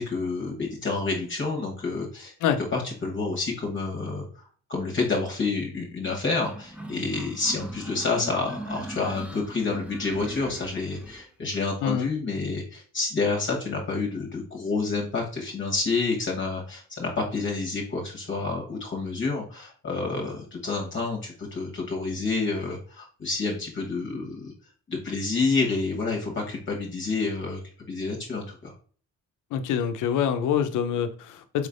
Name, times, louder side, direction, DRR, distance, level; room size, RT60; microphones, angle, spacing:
voice 1, 0.0-2.3 2.7-4.3 4.7-24.5 24.9-27.6 27.9-28.7, left 3 dB, 40° left, -1 dB, 1.1 m, -29 dB
sound 1, 6.4-11.2, right 1 dB, 5° right, 0.8 m, -40 dB
voice 2, 29.5-31.7, left 8 dB, 80° left, 9 dB, 0.6 m, -25 dB
4.8 x 3.2 x 2.5 m, 0.43 s
cardioid pair, 90°, 30 cm